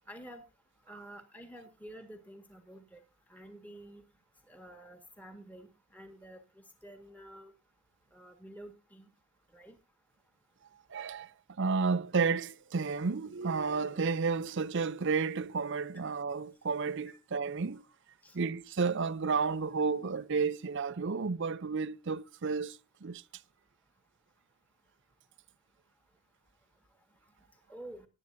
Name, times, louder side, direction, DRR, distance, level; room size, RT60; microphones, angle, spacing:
voice 1, 0.1-0.4 0.9-3.0 3.3-4.0 4.5-6.4 6.8-7.5 8.1-9.1 9.5-9.8 17.0-17.1 18.2-18.4 27.7-28.1, right 1 dB, 5° left, 1.7 m, -49 dB
voice 2, 10.9-11.3 11.6-17.8 18.3-23.2, right 4 dB, 55° right, 0.5 m, -32 dB
19.0 x 11.0 x 2.7 m
head